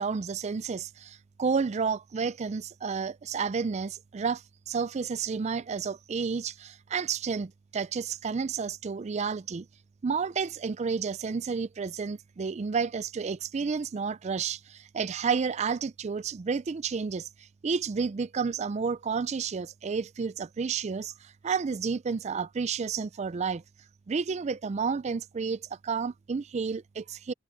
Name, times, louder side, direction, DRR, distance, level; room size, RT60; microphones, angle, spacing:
voice 1, 0.0-9.7 10.0-23.6 24.1-27.3, right 5 dB, 30° right, 0.3 m, -31 dB
head